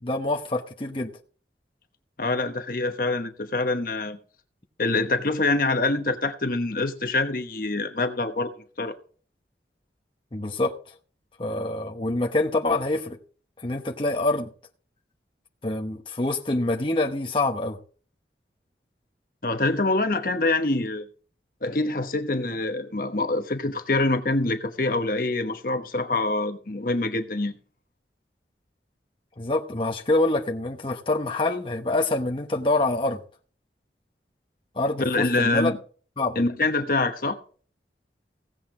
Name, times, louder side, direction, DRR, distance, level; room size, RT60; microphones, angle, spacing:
voice 1, 0.0-1.1 10.3-10.8 11.4-13.2 13.6-14.5 15.6-17.8 29.4-33.2 34.8-35.7 36.2-36.4, left 2 dB, 30° left, 1.0 m, -26 dB
voice 2, 2.2-4.2 4.8-8.5 8.8-8.9 19.4-21.1 21.6-27.5 35.0-35.8 36.3-37.4, left 2 dB, 50° left, 1.1 m, -25 dB
16.5 x 8.0 x 3.8 m
head